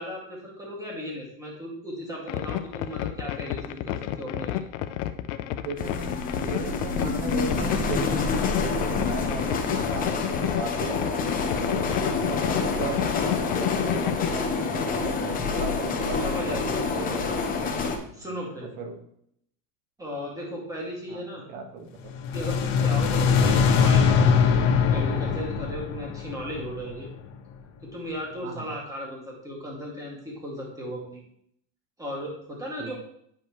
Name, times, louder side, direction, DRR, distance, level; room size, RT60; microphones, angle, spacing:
voice 1, 0.0-4.6 16.2-17.3 18.1-18.7 20.0-21.4 22.3-24.5 24.9-27.1 27.8-31.2 32.0-33.0, equal, 10° right, -3 dB, 2.1 m, -36 dB
sound 1, 2.3-14.3, left 13 dB, 85° left, 0.7 m, -30 dB
voice 2, 5.5-8.2 8.5-11.2 11.5-17.4 18.1-18.2 18.8-19.0 21.1-21.2 21.5-22.1 28.4-28.7 32.8-32.9, right 4 dB, 90° right, 4 dB, 1.6 m, -36 dB
sound 2, 5.8-18.0, left 4 dB, 25° left, 0.9 m, -28 dB
sound 3, 22.1-27.2, left 6 dB, 70° left, 1.3 m, -22 dB
9.6 x 5.3 x 3.1 m, 0.70 s
cardioid pair, 160°, 36 cm